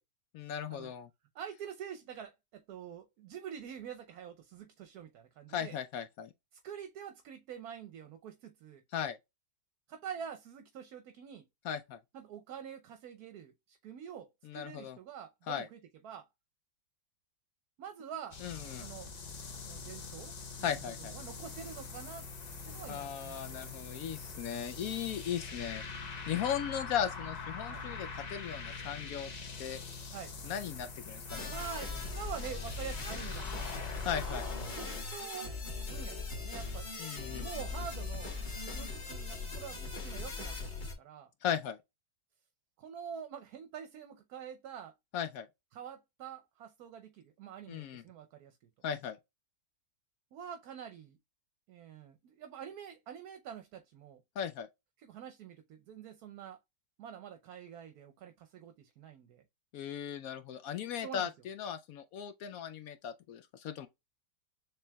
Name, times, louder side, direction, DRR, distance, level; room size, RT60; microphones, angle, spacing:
voice 1, 0.3-1.1 5.5-6.3 8.9-9.2 11.6-12.0 14.4-15.0 15.5-15.7 18.4-18.9 20.6-21.1 22.9-25.8 26.3-29.3 29.6-29.8 30.4-31.5 34.0-34.4 37.0-37.5 41.4-41.8 45.1-45.5 47.7-48.0 48.8-49.2 54.4-54.7 59.7-63.9, left 9 dB, 70° left, 0.8 m, -37 dB
voice 2, 1.3-5.8 6.5-8.8 9.9-11.4 12.1-16.3 17.8-18.4 18.8-19.1 19.6-20.7 21.0-22.3 22.7-23.7 26.3-26.5 27.7-27.8 30.1-30.3 31.5-33.9 34.3-34.4 34.7-35.6 35.8-36.9 37.4-38.4 38.6-41.3 42.8-44.9 45.7-48.6 50.3-51.2 51.7-54.2 55.0-56.6 57.0-59.4 61.0-61.3, right 8 dB, 65° right, 1.1 m, -46 dB
sound 1, 18.3-35.0, left 4 dB, 55° left, 0.4 m, -44 dB
sound 2, 31.3-40.9, left 3 dB, 30° left, 1.5 m, -40 dB
6.7 x 3.2 x 2.2 m
omnidirectional pair, 1.9 m